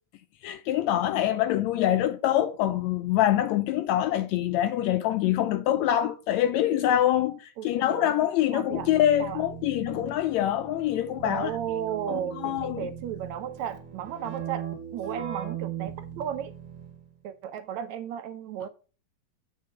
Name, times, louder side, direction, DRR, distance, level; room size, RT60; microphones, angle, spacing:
voice 1, 0.4-11.6 12.1-12.9, left 12 dB, 80° left, 1.7 m, -25 dB
voice 2, 7.6-8.1 8.5-8.9 9.2-9.4 11.2-16.5 17.2-18.7, right 9 dB, 75° right, 1.9 m, -34 dB
Keyboard (musical), 8.7-17.1, right 8 dB, 40° right, 2.0 m, -39 dB
8.4 x 5.4 x 5.8 m
omnidirectional pair, 3.6 m